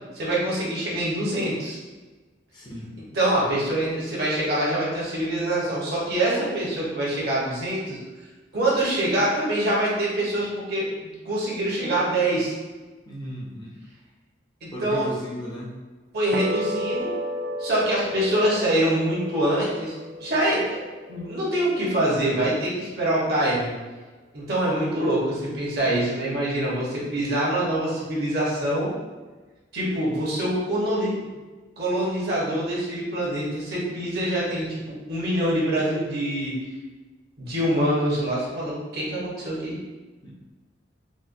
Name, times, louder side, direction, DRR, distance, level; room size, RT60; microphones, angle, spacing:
voice 1, 0.1-1.8 3.1-8.0 8.5-12.5 14.6-15.1 16.1-17.1 17.6-20.8 21.1-23.7 24.3-28.9 29.7-31.1 31.8-34.7 35.1-36.5 37.4-39.8, right 1 dB, 60° right, -6 dB, 1.1 m, -25 dB
voice 2, 2.5-2.9 13.1-13.7 14.7-15.7 40.2-40.3, equal, 25° left, -4 dB, 0.6 m, -35 dB
sound 1, 16.3-22.8, left 1 dB, 80° right, 0.4 m, -34 dB
4.1 x 2.3 x 2.6 m, 1.3 s
head